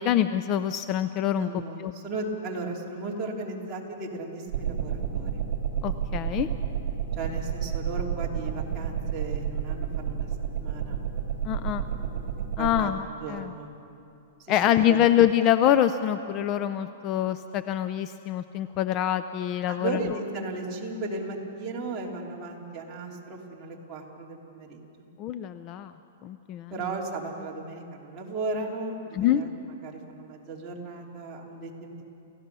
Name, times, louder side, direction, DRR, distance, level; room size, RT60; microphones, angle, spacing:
voice 1, 0.0-1.5 1.8-1.9 5.8-6.5 11.4-11.8 12.6-13.5 14.5-20.0 25.2-25.9 26.2-26.7 29.1-29.4, left 11 dB, 30° left, 11 dB, 0.5 m, -25 dB
voice 2, 1.3-5.4 7.1-10.3 10.5-11.0 12.6-12.9 13.2-13.7 14.4-14.6 14.9-15.0 19.6-25.1 26.7-32.1, right 3 dB, 20° right, -4 dB, 3.1 m, -36 dB
sound 1, 4.5-12.8, right 8 dB, 55° right, 2.7 m, -30 dB
29.5 x 16.0 x 6.9 m, 2.7 s
hypercardioid pair, 160°, 0 cm